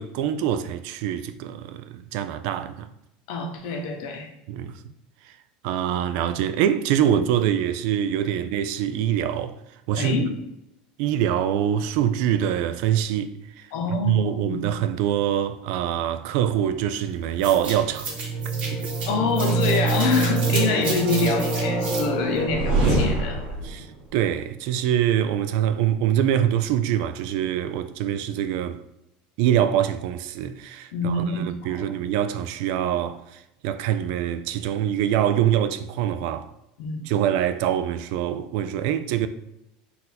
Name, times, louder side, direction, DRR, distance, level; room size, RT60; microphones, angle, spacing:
voice 1, 0.0-2.9 4.5-4.7 5.6-9.5 9.9-10.2 11.0-13.7 14.1-18.1 18.7-18.9 23.6-23.9 24.1-28.8 29.4-36.5 37.1-39.3, right 10 dB, 60° right, 0.3 m, -24 dB
voice 2, 3.3-4.3 10.0-10.3 13.7-14.7 19.1-23.4 30.9-31.9 36.8-37.0, left 4 dB, 65° left, 0.8 m, -26 dB
sound 1, 17.4-23.8, right 3 dB, 35° right, 1.3 m, -24 dB
4.0 x 2.6 x 4.1 m
supercardioid pair, 150°, 4 cm